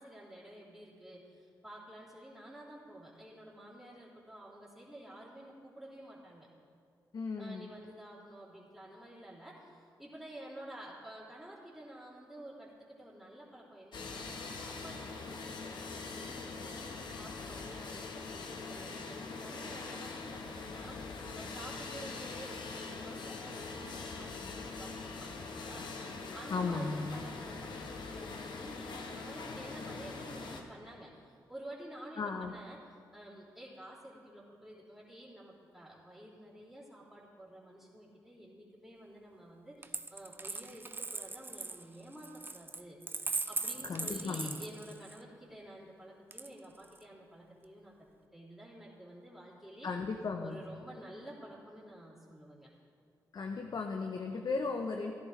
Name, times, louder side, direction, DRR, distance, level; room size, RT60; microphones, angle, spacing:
voice 1, 0.0-6.5 7.4-27.8 28.1-32.8 33.1-43.0 43.5-48.0 48.3-49.9 50.4-52.7, right 1 dB, 5° right, -11 dB, 3.4 m, -51 dB
voice 2, 7.1-7.7 26.5-27.2 32.2-32.5 43.8-44.6 49.8-50.6 53.3-55.1, left 4 dB, 55° left, 4 dB, 0.8 m, -36 dB
sound 1, 13.9-30.6, left 4 dB, 70° left, 1.1 m, -43 dB
Coin (dropping), 39.8-45.2 46.3-47.0, right 3 dB, 25° right, 0.6 m, -39 dB
16.0 x 11.0 x 3.2 m, 2.4 s
supercardioid pair, 50°, 8 cm